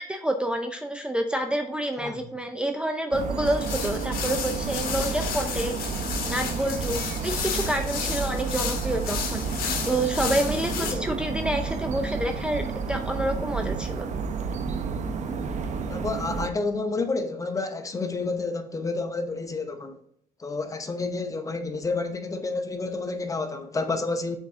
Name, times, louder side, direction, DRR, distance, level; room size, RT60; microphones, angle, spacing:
voice 1, 0.0-5.7 6.2-9.4 9.8-14.1, right 1 dB, 5° right, 0.5 m, -28 dB
sound 1, 3.1-16.5, right 5 dB, 55° right, 0.8 m, -31 dB
sound 2, 3.5-10.9, left 7 dB, 90° left, 1.3 m, -33 dB
voice 2, 15.9-20.0 20.4-24.4, left 3 dB, 20° left, 0.8 m, -29 dB
7.3 x 4.1 x 3.6 m
cardioid pair, 125°, 15 cm